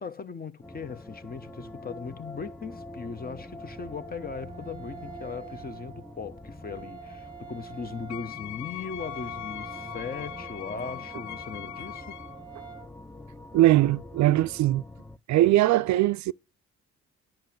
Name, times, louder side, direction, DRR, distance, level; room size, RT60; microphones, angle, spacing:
voice 1, 0.0-12.2, left 5 dB, 30° left, 0.9 m, -38 dB
sound 1, 0.6-15.2, left 2 dB, 5° left, 0.5 m, -45 dB
Wind instrument woodwind instrument, 2.9-12.9, right 8 dB, 15° right, 0.9 m, -47 dB
Wind instrument woodwind instrument 2, 8.1-12.4, left 15 dB, 70° left, 0.6 m, -40 dB
voice 2, 13.5-14.8 15.3-16.3, right 15 dB, 70° right, 0.4 m, -21 dB
10.5 x 5.9 x 7.6 m
cardioid pair, 90°, 30 cm